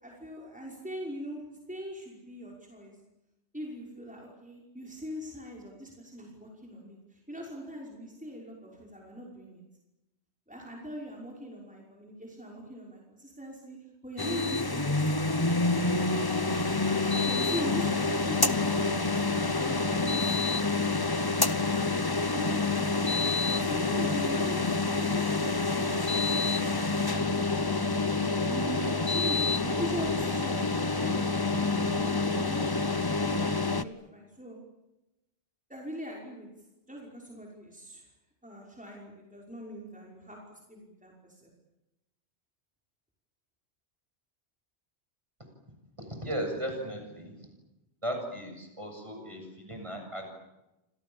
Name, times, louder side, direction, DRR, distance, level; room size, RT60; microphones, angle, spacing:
voice 1, 0.0-3.0 3.5-9.6 10.5-13.8 14.0-16.2 17.2-20.9 22.3-27.9 28.5-31.3 31.8-34.6 35.7-36.5 36.9-38.1 38.4-40.4 40.7-41.1 41.4-41.5, equal, 5° right, -2 dB, 5.7 m, -41 dB
sound 1, 14.2-33.8, left 3 dB, 20° left, 1.0 m, -27 dB
voice 2, 46.1-47.4 48.0-50.3, equal, 25° right, 4 dB, 7.3 m, -36 dB
29.5 x 26.5 x 7.3 m, 0.96 s
omnidirectional pair, 1.2 m